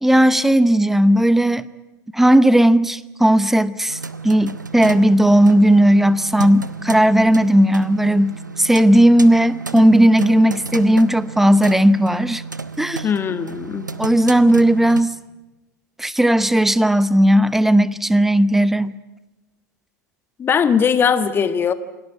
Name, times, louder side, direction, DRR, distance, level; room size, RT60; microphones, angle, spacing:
voice 1, 0.0-1.6 2.1-4.0 4.2-12.4 12.8-13.0 14.0-15.1 16.0-18.9, right 1 dB, 5° right, 17 dB, 0.8 m, -15 dB
sound 1, 3.9-15.0, right 4 dB, 85° right, 1.0 m, -33 dB
voice 2, 13.0-13.8 20.4-21.7, left 7 dB, 20° left, 12 dB, 1.4 m, -19 dB
27.5 x 18.5 x 8.3 m, 1.1 s
figure-of-eight pair, 85°, 10 cm